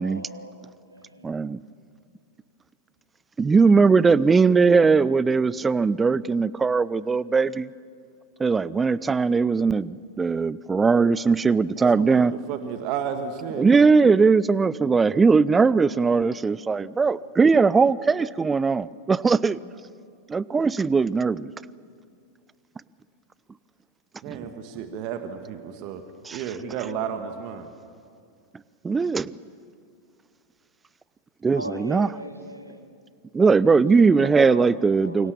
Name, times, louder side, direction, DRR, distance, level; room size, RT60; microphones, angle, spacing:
voice 1, 0.0-1.4 31.5-32.9 34.0-35.3, right 1 dB, 85° right, 6 dB, 2.3 m, -38 dB
voice 2, 1.2-1.6 3.4-7.7 8.4-12.3 13.6-19.6 20.3-21.5 24.3-24.5 26.2-26.4 28.8-29.4 31.4-32.1 33.3-35.3, right 4 dB, 15° right, 21 dB, 0.6 m, -20 dB
voice 3, 12.0-13.7 24.2-26.0 26.3-27.7, right 8 dB, 45° right, 8 dB, 1.8 m, -32 dB
28.0 x 25.0 x 7.1 m, 2.3 s
figure-of-eight pair, 90°, 0 cm